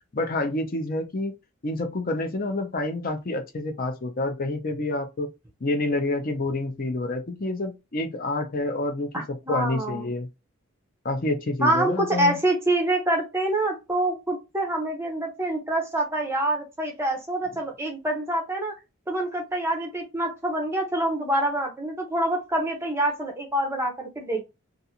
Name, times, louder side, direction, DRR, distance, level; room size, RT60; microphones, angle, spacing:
voice 1, 0.1-1.3 1.6-5.3 5.6-10.3 11.0-12.3, left 2 dB, 40° left, 0.5 m, -28 dB
voice 2, 9.1-10.1 11.6-18.7 19.1-24.4, right 1 dB, 10° right, 0.6 m, -26 dB
2.4 x 2.4 x 2.8 m
head